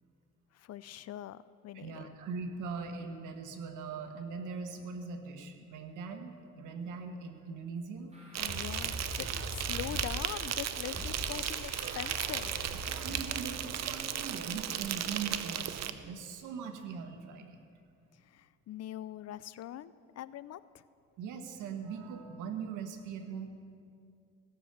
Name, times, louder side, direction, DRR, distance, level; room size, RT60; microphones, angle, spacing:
voice 1, 0.5-2.1 8.4-12.6 18.1-20.9, left 12 dB, 55° left, 17 dB, 0.5 m, -43 dB
voice 2, 1.7-8.1 9.3-9.4 12.9-17.6 21.2-23.5, right 5 dB, 90° right, 6 dB, 1.3 m, -41 dB
sound 1, 8.1-13.2, equal, 20° right, 4.2 m, -42 dB
Insect, 8.3-15.9, right 10 dB, 60° right, 0.8 m, -36 dB
16.5 x 6.9 x 8.0 m, 2.4 s
cardioid pair, 90°, 30 cm